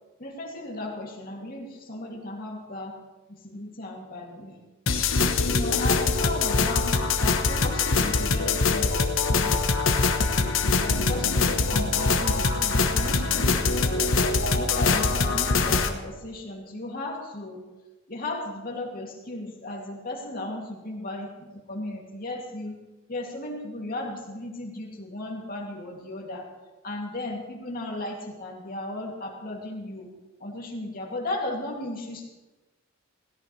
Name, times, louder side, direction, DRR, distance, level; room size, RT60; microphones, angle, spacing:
voice 1, 0.2-3.0 3.3-4.6 5.5-9.7 10.8-14.2 14.6-17.6 18.1-22.8 23.1-26.5 26.8-30.1 30.4-32.3, left 2 dB, 50° left, -1 dB, 2.7 m, -35 dB
sound 1, 4.9-15.9, left 4 dB, 85° left, 1.1 m, -23 dB
17.0 x 16.0 x 3.3 m, 1.1 s
head